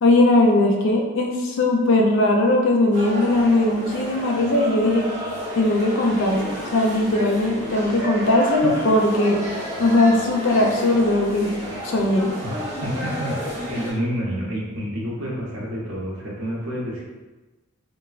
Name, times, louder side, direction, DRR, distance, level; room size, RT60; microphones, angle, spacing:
voice 1, 0.0-5.1 5.5-9.4 9.8-11.5 11.8-12.3, left 2 dB, 55° left, 1 dB, 0.4 m, -19 dB
sound 1, 2.9-13.9, equal, 30° right, 0.6 m, -31 dB
voice 2, 12.8-13.4 13.7-17.0, equal, 75° right, -4 dB, 0.7 m, -28 dB
3.1 x 2.1 x 2.4 m, 1.2 s
head